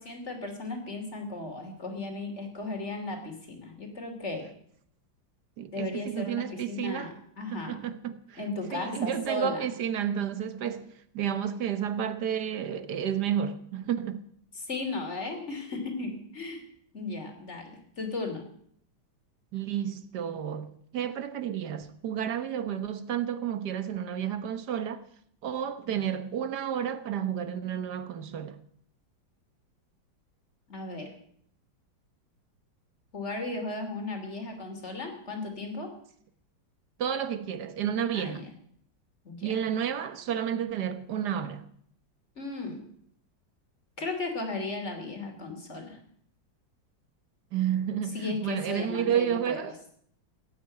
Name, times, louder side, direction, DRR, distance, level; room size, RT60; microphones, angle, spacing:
voice 1, 0.0-4.5 5.7-7.8 8.4-9.7 14.6-16.6 16.9-18.4 30.7-31.1 33.1-35.9 38.1-38.5 39.2-39.6 42.4-42.8 44.0-46.0 48.1-49.7, left 2 dB, 35° left, 3.2 m, -36 dB
voice 2, 5.6-7.1 7.5-8.4 8.7-14.2 19.5-25.0 25.4-28.6 37.0-38.5 39.4-41.7 47.5-49.8, right 9 dB, 60° right, 1.5 m, -31 dB
17.0 x 9.4 x 8.4 m
omnidirectional pair, 2.1 m